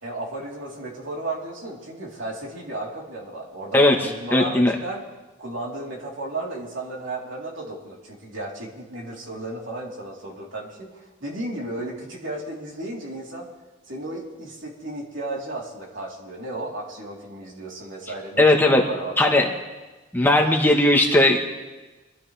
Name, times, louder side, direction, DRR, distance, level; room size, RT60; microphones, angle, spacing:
voice 1, 0.0-5.0 5.4-13.5 13.9-19.4, right 2 dB, 70° right, -3 dB, 3.7 m, -34 dB
voice 2, 4.3-4.8 18.4-18.8 19.2-19.5 20.1-21.4, left 1 dB, 10° left, 0 dB, 1.2 m, -17 dB
25.5 x 13.0 x 3.4 m, 1.2 s
head